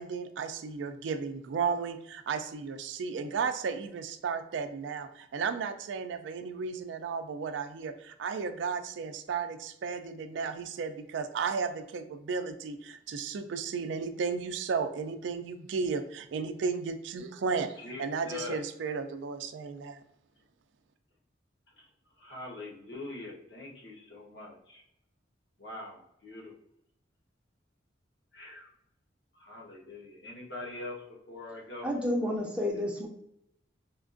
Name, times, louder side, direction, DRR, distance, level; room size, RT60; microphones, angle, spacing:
voice 1, 0.0-20.0, right 5 dB, 70° right, 9 dB, 0.3 m, -34 dB
voice 2, 17.8-18.6 22.2-24.8 25.6-26.5 28.3-28.7 29.3-31.0 31.3-31.9, left 2 dB, 65° left, -2 dB, 0.9 m, -43 dB
voice 3, 31.8-33.1, left 1 dB, 5° right, -1 dB, 0.5 m, -30 dB
4.3 x 2.4 x 2.4 m, 0.77 s
head